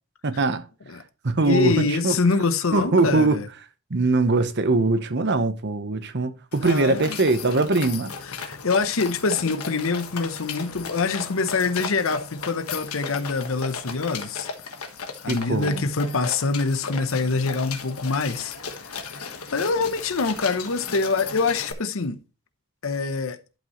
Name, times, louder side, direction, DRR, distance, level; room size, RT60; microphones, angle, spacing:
voice 1, 0.2-0.7 1.2-2.2 2.7-3.4 3.9-8.1 15.3-15.8, right 3 dB, 50° right, 0.9 m, -22 dB
voice 2, 1.5-3.5 6.6-7.2 8.3-14.5 15.2-22.2 22.8-23.4, left 4 dB, 65° left, 0.8 m, -25 dB
sound 1, 6.5-21.7, left 5 dB, 85° left, 1.3 m, -36 dB
11.5 x 5.4 x 3.0 m
head